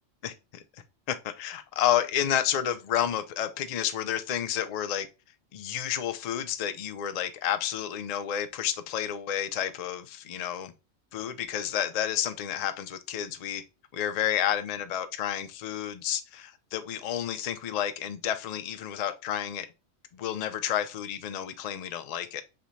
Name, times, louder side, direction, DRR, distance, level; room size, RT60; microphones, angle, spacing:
voice 1, 0.2-0.6 1.1-5.1 5.5-10.7 11.1-13.6 14.0-19.7 20.1-22.4, left 10 dB, 85° left, 0.3 m, -30 dB
3.2 x 2.9 x 4.0 m
omnidirectional pair, 1.3 m